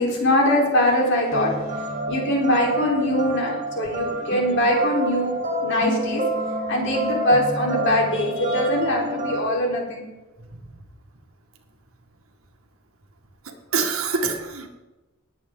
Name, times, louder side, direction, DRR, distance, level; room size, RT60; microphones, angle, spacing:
voice 1, 0.0-5.3 5.6-6.2 6.7-10.0, left 1 dB, 60° left, -2 dB, 4.0 m, -22 dB
sound 1, 1.3-9.4, right 1 dB, 35° right, 1.7 m, -28 dB
voice 2, 13.4-14.7, right 4 dB, 85° right, 4 dB, 1.9 m, -26 dB
19.0 x 8.5 x 3.9 m, 1.1 s
head